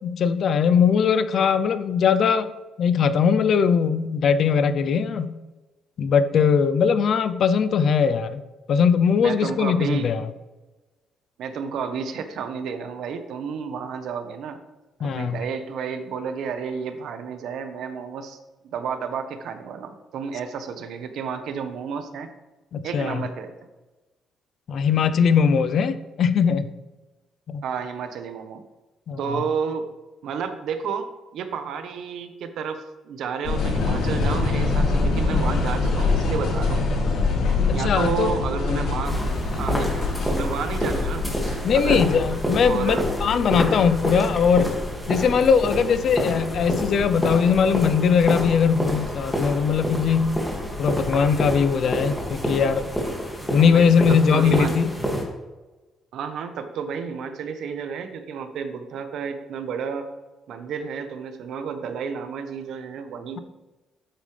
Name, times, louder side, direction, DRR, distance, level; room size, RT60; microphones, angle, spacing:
voice 1, 0.0-2.5 2.8-5.3 6.0-8.4 8.7-10.3 15.0-15.4 22.7-23.2 24.7-26.7 27.5-27.6 29.1-29.2 37.7-38.3 38.7-38.8 39.7-39.8 41.6-44.7 45.1-50.4 50.8-52.9 53.5-54.9, left 6 dB, 55° left, 12 dB, 0.7 m, -20 dB
voice 2, 9.2-10.3 11.4-14.6 15.0-18.4 18.6-22.3 22.8-23.5 27.6-28.6 29.2-29.8 30.2-36.8 37.7-39.2 39.6-42.0 42.6-43.1 53.5-54.7 56.1-60.1 60.5-63.4, right 6 dB, 70° right, 8 dB, 1.2 m, -31 dB
sound 1, 33.4-53.1, left 3 dB, 90° left, 4.1 m, -27 dB
sound 2, 39.0-55.2, equal, 5° left, 2.3 m, -29 dB
12.5 x 9.0 x 3.4 m, 1.2 s
cardioid pair, 140°, 0 cm